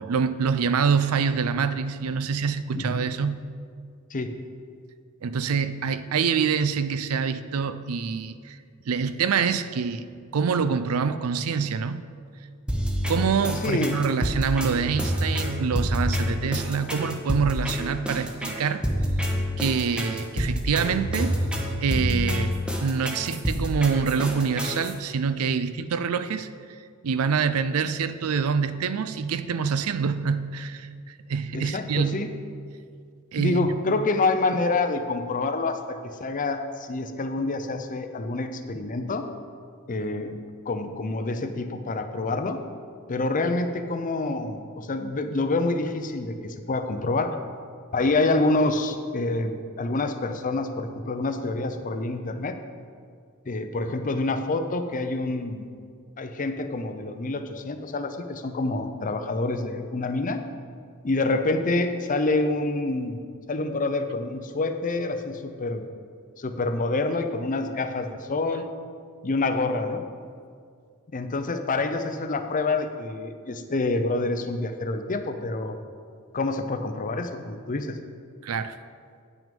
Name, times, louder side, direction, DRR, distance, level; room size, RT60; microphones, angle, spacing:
voice 1, 0.0-3.4 5.2-8.6 8.9-10.0 10.3-12.0 13.1-18.8 19.6-21.3 21.8-22.5 22.8-26.5 27.0-32.3 33.3-33.7 78.4-78.8, right 6 dB, 75° right, 13 dB, 0.4 m, -26 dB
sound 1, 12.7-24.9, equal, 5° right, 0.8 m, -27 dB
voice 2, 13.6-14.0 31.5-32.3 33.4-39.3 39.9-40.4 40.7-42.6 43.1-47.3 47.9-52.6 53.5-55.7 56.2-60.4 61.0-63.2 63.5-65.8 66.4-68.7 69.2-70.0 71.1-75.8 76.3-78.0, left 2 dB, 40° left, 8 dB, 0.6 m, -27 dB
9.1 x 6.1 x 5.3 m, 2.1 s
head